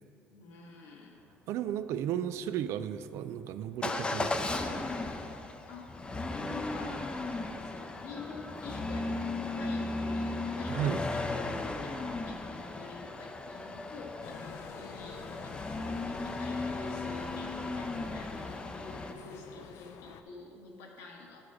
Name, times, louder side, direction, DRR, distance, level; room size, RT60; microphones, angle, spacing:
voice 1, 0.3-1.2 5.7-5.9 6.4-7.1 7.3-11.9 12.2-21.5, left 3 dB, 90° left, -1 dB, 1.4 m, -48 dB
voice 2, 1.5-4.9 10.7-11.0, right 10 dB, 70° right, 12 dB, 0.3 m, -34 dB
Motor vehicle (road) / Engine starting / Accelerating revving vroom, 3.8-19.1, left 2 dB, 20° left, 0.5 m, -36 dB
sound 1, 14.2-20.2, left 7 dB, 70° left, 0.5 m, -48 dB
10.5 x 4.7 x 4.9 m, 2.6 s
cardioid pair, 110°, 5 cm